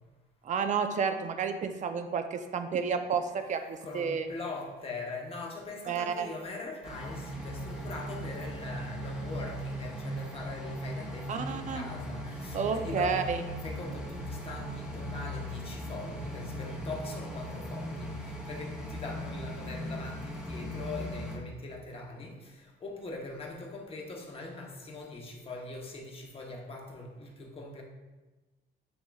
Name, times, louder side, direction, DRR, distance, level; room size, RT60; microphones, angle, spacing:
voice 1, 0.4-4.3 5.9-6.3 11.3-11.8 12.5-13.4, right 6 dB, 40° right, 0.5 m, -31 dB
voice 2, 3.5-13.3 13.6-27.8, left 2 dB, 30° left, 0.9 m, -42 dB
sound 1, 6.8-21.4, equal, 5° right, 0.9 m, -38 dB
7.7 x 2.9 x 2.3 m
cardioid pair, 110°, 19 cm